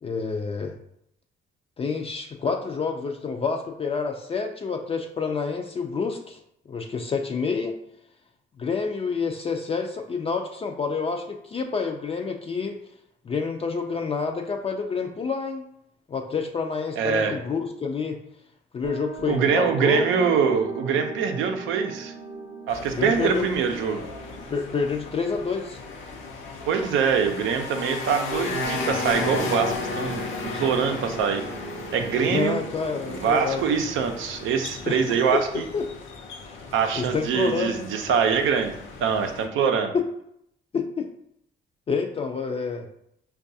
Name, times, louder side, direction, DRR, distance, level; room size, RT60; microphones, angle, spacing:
voice 1, 0.0-0.7 1.8-6.4 6.7-7.8 8.6-12.8 13.2-15.6 16.1-18.2 18.7-20.1 23.0-23.4 24.5-25.8 32.3-33.6 34.9-35.9 36.4-36.6 37.0-37.9 39.9-40.0 40.7-41.1 41.9-42.9, left 5 dB, 30° left, 3 dB, 0.3 m, -28 dB
voice 2, 17.0-17.3 19.3-22.1 22.7-24.0 26.7-30.2 30.5-31.4 31.9-32.6 33.1-35.7 36.7-38.7 39.0-39.9, right 6 dB, 80° right, 6 dB, 0.5 m, -24 dB
sound 1, 18.8-26.9 28.3-35.0, right 2 dB, 25° right, 0.5 m, -37 dB
sound 2, 22.7-39.5, left 4 dB, 85° left, 0.6 m, -35 dB
4.5 x 2.3 x 2.6 m, 0.76 s
cardioid pair, 90°, 20 cm